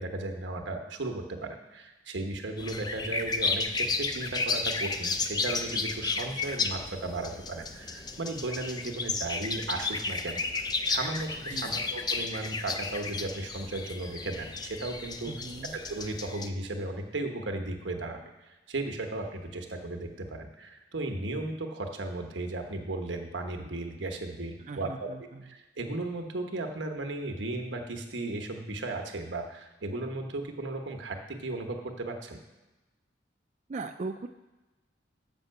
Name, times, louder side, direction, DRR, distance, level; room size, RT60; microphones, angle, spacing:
voice 1, 0.0-15.3 15.9-18.2 18.5-25.1 25.4-32.4, right 2 dB, 90° right, 4 dB, 1.1 m, -35 dB
sound 1, 2.6-16.5, left 4 dB, 25° left, 0.5 m, -33 dB
voice 2, 11.5-12.0 15.3-15.8 24.6-25.4 33.7-34.3, right 3 dB, 40° right, 4 dB, 0.4 m, -39 dB
7.3 x 5.4 x 6.6 m, 1.1 s
head